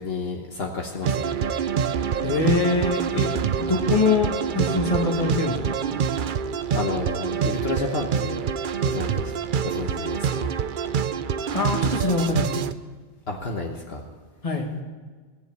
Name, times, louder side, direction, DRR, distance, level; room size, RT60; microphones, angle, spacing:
voice 1, 0.0-1.6 3.2-3.4 6.7-8.5 8.8-9.3 9.6-10.5 13.3-14.0, left 3 dB, 65° left, 1 dB, 1.4 m, -31 dB
sound 1, 1.0-12.7, right 7 dB, 55° right, 0.7 m, -26 dB
voice 2, 2.2-3.3 3.6-5.8 11.5-12.6 14.4-14.7, left 3 dB, 30° left, 1 dB, 2.0 m, -24 dB
17.5 x 7.2 x 8.7 m, 1.4 s
omnidirectional pair, 1.1 m